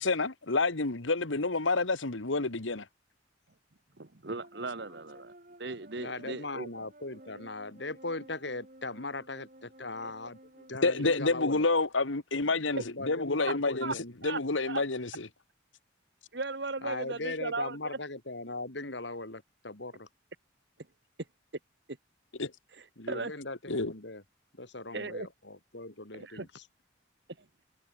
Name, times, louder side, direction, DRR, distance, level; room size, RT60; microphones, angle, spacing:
voice 1, 0.0-2.8 10.8-13.9 14.2-15.1 22.4-22.5 23.7-23.9, left 3 dB, 85° left, 1.7 m, -28 dB
voice 2, 4.0-5.3 5.6-6.7 10.0-10.1 10.8-11.1 13.8-13.9 14.2-14.4 14.7-14.8 16.3-18.0 22.7-23.3 24.9-25.3 26.1-26.5, right 3 dB, 60° right, 1.3 m, -37 dB
sound 1, 4.3-10.8, right 1 dB, 45° right, 5.3 m, -54 dB
voice 3, 6.0-10.4 10.7-11.7 12.3-14.1 16.8-20.1 23.0-24.2 24.6-26.6, left 2 dB, 65° left, 3.5 m, -39 dB
open air
head